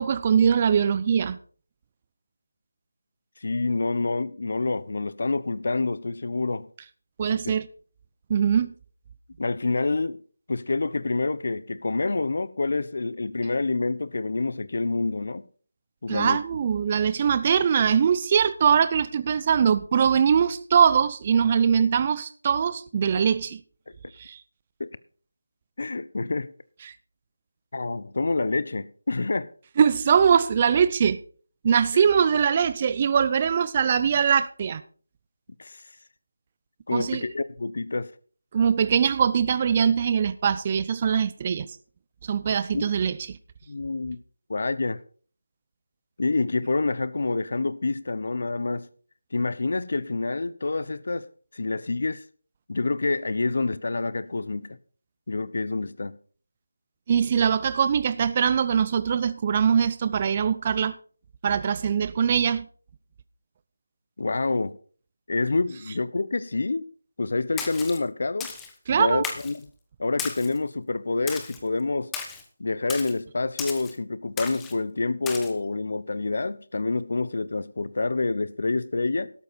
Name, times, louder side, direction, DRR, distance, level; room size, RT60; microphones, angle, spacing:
voice 1, 0.0-1.4 7.2-7.7 8.3-8.7 16.1-23.6 24.2-24.4 26.8-26.9 29.8-31.2 31.6-34.8 36.9-37.2 38.5-41.7 42.2-43.4 57.1-60.9 61.4-62.6 68.9-69.3, right 7 dB, 25° right, 0.5 m, -22 dB
voice 2, 3.4-6.7 7.3-7.5 9.4-10.2 10.5-15.4 16.0-16.4 23.1-23.2 24.8-24.9 25.8-26.5 27.7-29.5 35.6-35.8 36.9-38.1 42.7-42.8 43.7-44.2 44.5-45.0 46.2-48.9 49.3-51.3 51.5-52.2 52.7-54.8 55.3-56.2 64.2-64.8 65.3-66.9 67.2-68.5 68.9-69.7 70.0-72.1 72.6-79.3, left 3 dB, 55° left, 1.0 m, -27 dB
Splash splatter, 67.6-68.0 68.4-68.7 69.2-69.6 70.2-70.6 71.3-71.6 72.1-72.4 72.9-73.1 73.6-73.9 74.4-74.7 75.3-75.5, left 6 dB, 5° left, 1.1 m, -35 dB
12.5 x 12.0 x 4.4 m
figure-of-eight pair, 170°, 0 cm